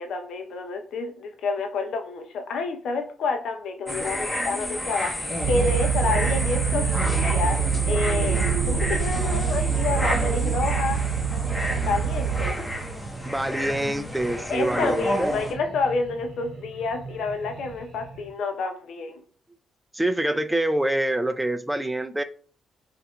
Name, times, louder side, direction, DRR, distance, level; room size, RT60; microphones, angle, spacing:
voice 1, 0.0-7.6 7.9-11.0 11.8-12.6 14.5-19.2, left 4 dB, 70° left, 5 dB, 0.6 m, -29 dB
sound 1, 3.9-15.5, left 1 dB, 10° left, 0.9 m, -30 dB
sound 2, 4.8-18.3, right 4 dB, 65° right, 0.9 m, -42 dB
sound 3, 5.4-12.5, right 7 dB, 80° right, 0.4 m, -25 dB
voice 2, 13.2-15.3 19.9-22.2, right 1 dB, 10° right, 10 dB, 0.4 m, -26 dB
4.8 x 2.5 x 3.1 m, 0.43 s
cardioid pair, 90°, 0 cm